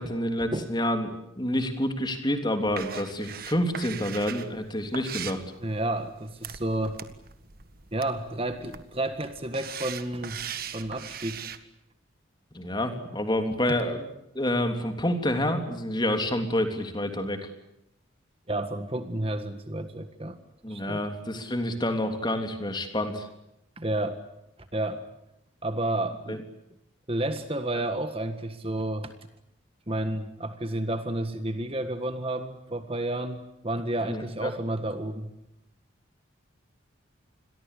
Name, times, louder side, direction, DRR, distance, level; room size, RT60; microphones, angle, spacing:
voice 1, 0.0-5.4 12.5-14.1 14.3-17.4 20.6-23.3 26.3-26.4 34.0-34.5, left 1 dB, 20° left, 6 dB, 3.3 m, -28 dB
sound 1, 2.6-11.6, right 8 dB, 50° right, 1.7 m, -40 dB
voice 2, 5.6-7.0 7.9-10.4 10.7-11.4 18.5-20.4 20.7-21.1 23.8-24.2 24.7-25.0 25.6-26.4 27.1-29.1 29.9-35.3, right 1 dB, 30° right, 9 dB, 1.7 m, -31 dB
28.5 x 22.0 x 8.5 m, 0.83 s
head